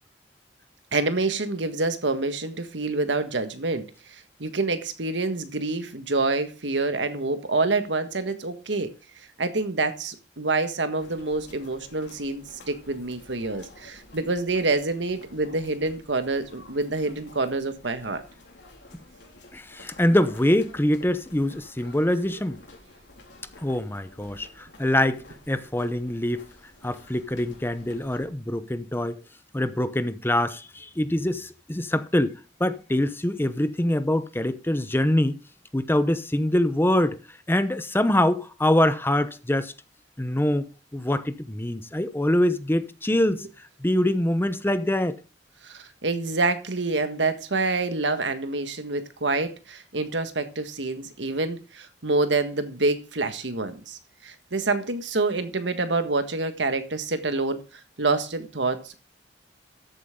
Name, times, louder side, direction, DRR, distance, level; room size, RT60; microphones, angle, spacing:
voice 1, 0.9-3.9 4.4-8.9 9.4-18.2 45.6-57.6 58.0-59.0, right 3 dB, 85° right, 1.6 m, -27 dB
sound 1, 11.0-28.3, left 2 dB, 75° left, 3.9 m, -50 dB
voice 2, 19.5-22.6 23.6-26.4 26.8-29.2 29.5-32.3 32.6-35.4 35.7-37.2 37.5-39.7 40.2-40.7 40.9-43.5 43.8-45.2, left 1 dB, 15° left, 0.8 m, -24 dB
13.5 x 8.1 x 3.7 m
head